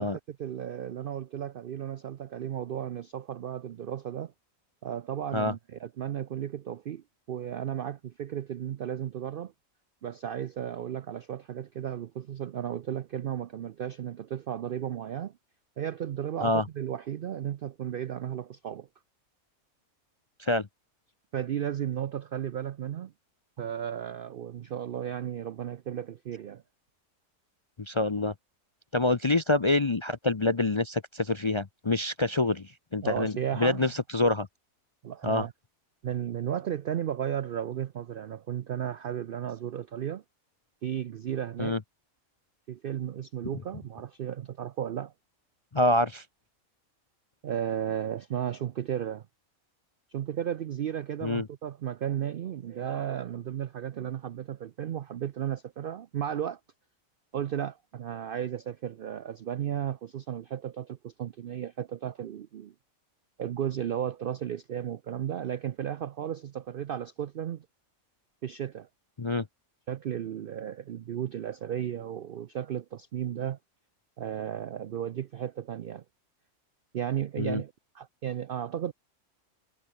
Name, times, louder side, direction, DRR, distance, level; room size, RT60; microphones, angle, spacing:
voice 1, 0.0-4.3 4.8-9.5 10.0-15.3 15.8-18.9 21.3-23.1 23.6-26.6 33.0-33.9 35.0-35.5 36.0-40.2 40.8-41.8 42.7-45.1 47.4-49.3 50.1-56.6 57.3-62.7 63.4-67.7 68.4-68.9 69.9-73.6 74.2-76.0 76.9-78.9, right 10 dB, 65° right, 0.5 m, -34 dB
voice 2, 27.8-28.3 28.9-34.5 35.2-35.5 41.6-41.8 45.7-46.2 51.2-51.5 69.2-69.4 77.4-77.6, left 2 dB, 30° left, 0.5 m, -26 dB
omnidirectional pair, 1.5 m